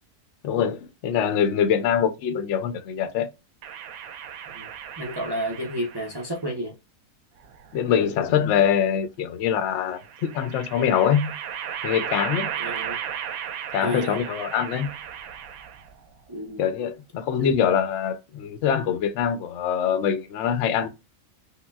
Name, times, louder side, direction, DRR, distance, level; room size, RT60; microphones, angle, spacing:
voice 1, 0.4-3.3 7.7-11.3 11.8-12.5 13.7-14.9 16.6-20.9, left 8 dB, 65° left, 0.8 m, -24 dB
sound 1, 3.6-6.3 7.4-8.4 10.0-16.0, right 8 dB, 80° right, 1.1 m, -35 dB
voice 2, 4.5-6.8 12.6-13.0 13.8-14.2 16.3-16.6 17.4-17.6, equal, 35° right, 0.4 m, -31 dB
5.6 x 2.2 x 2.3 m
omnidirectional pair, 1.5 m